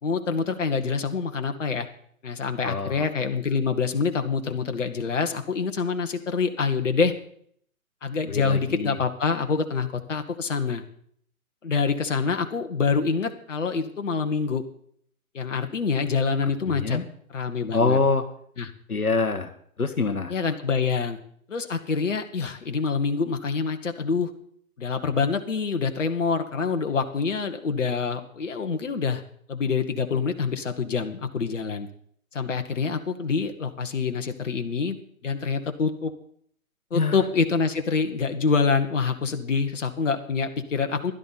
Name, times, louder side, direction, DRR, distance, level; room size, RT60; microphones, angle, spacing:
voice 1, 0.0-1.9 2.2-7.1 8.0-10.8 11.6-14.6 15.3-17.0 17.3-18.0 18.6-18.7 20.3-21.2 21.5-24.3 24.8-29.2 29.5-31.9 32.3-35.0 35.2-36.1 36.9-41.1, left 5 dB, 60° left, 6 dB, 1.4 m, -26 dB
voice 2, 2.6-3.1 8.3-9.0 16.6-17.0 17.7-18.3 18.9-19.5 19.8-20.3 36.9-37.2, left 4 dB, 80° left, 8 dB, 1.3 m, -25 dB
16.0 x 11.5 x 4.1 m, 0.63 s
figure-of-eight pair, 135°, 43 cm